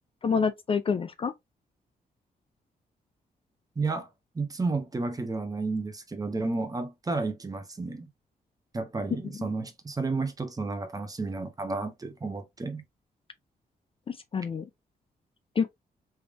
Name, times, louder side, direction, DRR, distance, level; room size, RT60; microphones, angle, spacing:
voice 1, 0.2-1.3 14.1-14.7 15.6-15.7, left 5 dB, 35° left, 0.4 m, -27 dB
voice 2, 3.8-4.1 4.3-8.1 8.7-12.8, right 3 dB, 25° right, 0.9 m, -32 dB
3.4 x 3.2 x 2.4 m
cardioid pair, 110°, 16 cm